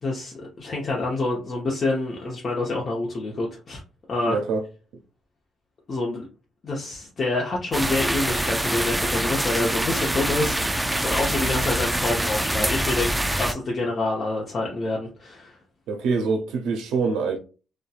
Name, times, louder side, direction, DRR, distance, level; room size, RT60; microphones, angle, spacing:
voice 1, 0.0-3.8 4.1-4.4 5.9-6.3 6.6-15.6, left 2 dB, 45° left, 0.8 m, -27 dB
voice 2, 4.3-4.6 15.9-17.4, right 4 dB, 80° right, 0.4 m, -25 dB
sound 1, 7.7-13.5, right 1 dB, 10° right, 0.3 m, -25 dB
2.7 x 2.2 x 2.3 m
supercardioid pair, 55°, 0 cm